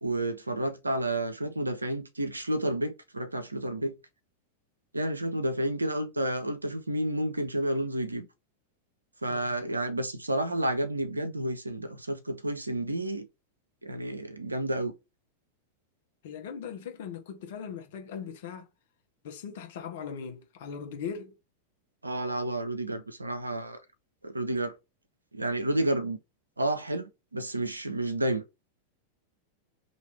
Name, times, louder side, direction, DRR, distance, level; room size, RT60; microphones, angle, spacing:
voice 1, 0.0-4.0 4.9-8.3 9.2-13.3 13.8-14.9 22.0-23.8 24.2-24.8 25.3-26.2 26.6-28.4, right 1 dB, 80° right, 0.6 m, -30 dB
voice 2, 16.2-18.7 19.2-21.3, left 7 dB, 55° left, 1.0 m, -39 dB
3.2 x 2.9 x 4.2 m
figure-of-eight pair, 90°, 0 cm